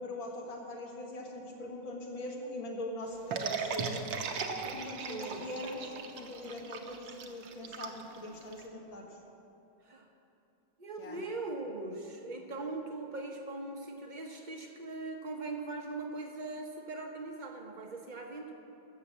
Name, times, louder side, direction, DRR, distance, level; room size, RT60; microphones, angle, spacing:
voice 1, 0.0-4.1 4.6-9.1 11.0-11.2, left 1 dB, 70° left, -1 dB, 2.4 m, -41 dB
sound 1, 3.3-8.6, right 6 dB, 70° right, 1.5 m, -38 dB
voice 2, 5.1-5.5 9.8-10.1 10.8-18.5, right 3 dB, 35° right, 2 dB, 0.8 m, -40 dB
14.0 x 7.6 x 7.4 m, 2.8 s
omnidirectional pair, 2.2 m